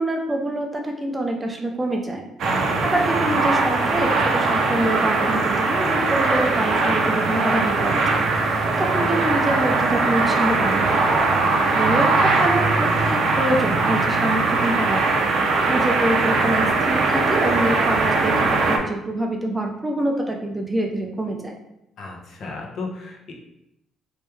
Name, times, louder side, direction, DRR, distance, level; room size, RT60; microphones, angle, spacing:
voice 1, 0.0-2.2 2.8-11.2 11.7-21.5, right 1 dB, 15° right, 2 dB, 0.5 m, -26 dB
voice 2, 2.4-2.9 22.0-23.3, left 3 dB, 55° left, -1 dB, 0.9 m, -34 dB
sound 1, 2.4-18.8, right 3 dB, 65° right, 0.7 m, -20 dB
3.1 x 3.1 x 3.4 m, 0.83 s
cardioid pair, 120°, 0 cm